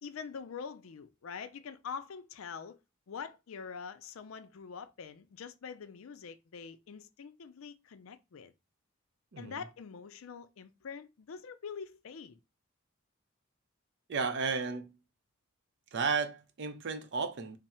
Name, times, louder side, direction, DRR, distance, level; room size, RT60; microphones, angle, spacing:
voice 1, 0.0-2.8 3.1-8.5 9.4-12.4, left 6 dB, 80° left, 0.5 m, -44 dB
voice 2, 9.3-9.6 14.1-14.9 15.9-17.6, right 5 dB, 60° right, 0.5 m, -33 dB
3.5 x 2.0 x 4.3 m
head